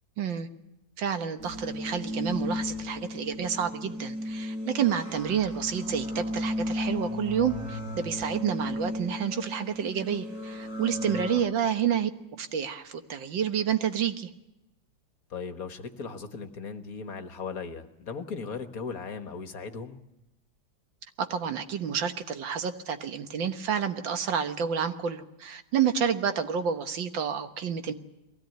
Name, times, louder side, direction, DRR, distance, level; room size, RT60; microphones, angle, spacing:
voice 1, 0.2-0.5 1.0-12.1 12.4-14.3 21.2-27.9, right 8 dB, 75° right, 9 dB, 1.9 m, -29 dB
sound 1, 1.4-11.4, left 1 dB, 50° right, 3.7 m, -34 dB
voice 2, 15.3-20.0, left 5 dB, 50° left, 9 dB, 1.6 m, -37 dB
22.0 x 16.5 x 9.2 m, 0.94 s
omnidirectional pair, 2.1 m